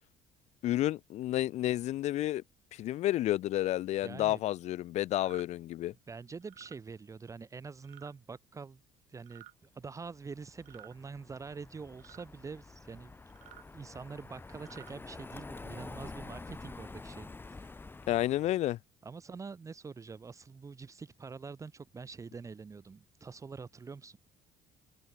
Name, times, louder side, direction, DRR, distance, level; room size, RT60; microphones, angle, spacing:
voice 1, 0.6-2.4 2.7-5.9 18.1-18.8, left 14 dB, 65° left, 0.7 m, -30 dB
voice 2, 4.0-4.4 6.1-8.8 9.1-13.1 13.7-17.9 19.0-24.2, right 5 dB, 25° right, 1.7 m, -45 dB
sound 1, 5.1-5.5 6.4-6.8 7.8-8.1 9.2-9.5 10.6-11.0 12.0-12.3 13.3-13.7 14.5-14.9, right 17 dB, 75° right, 2.4 m, -54 dB
Car passing by, 10.1-18.6, left 3 dB, 15° left, 2.1 m, -48 dB
cardioid pair, 115°, 13 cm